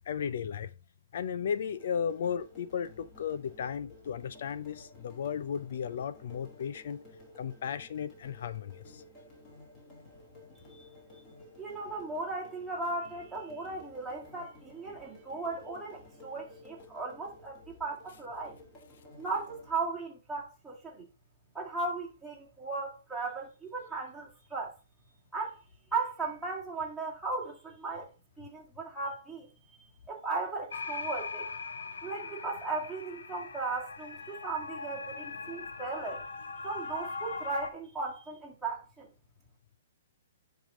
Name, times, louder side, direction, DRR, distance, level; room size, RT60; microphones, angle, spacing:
voice 1, 0.1-0.7 1.1-7.0 7.4-9.0, left 7 dB, 55° left, 0.5 m, -35 dB
sound 1, 1.4-19.8, left 2 dB, 20° left, 3.0 m, -54 dB
voice 2, 11.6-18.6 19.2-21.0 21.5-24.8 25.3-25.6 25.9-28.1 28.4-29.5 30.1-31.5 32.0-36.3 36.6-39.1, right 3 dB, ahead, 1.9 m, -37 dB
sound 2, 30.7-37.7, left 4 dB, 85° left, 0.9 m, -40 dB
10.5 x 3.7 x 3.7 m
hypercardioid pair, 160°, 0 cm